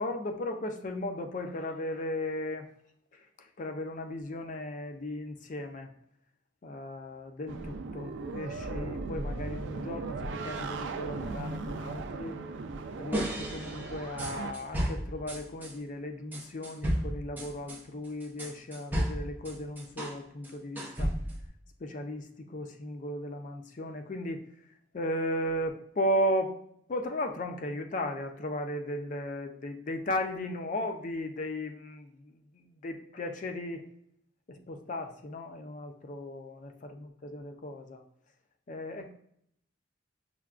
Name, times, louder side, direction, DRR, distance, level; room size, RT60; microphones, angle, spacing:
voice 1, 0.0-2.7 3.1-3.2 3.6-5.9 6.6-12.4 13.0-21.1 21.8-24.5 24.9-26.6 26.9-33.8 34.5-38.0 38.7-39.1, left 1 dB, 45° left, 5 dB, 0.4 m, -36 dB
sound 1, 7.5-14.5, right 3 dB, 80° right, 0.4 m, -37 dB
sound 2, 13.1-15.7 16.3-20.2 20.4-21.5, equal, 10° right, 0.6 m, -34 dB
5.8 x 2.2 x 2.4 m, 0.70 s
head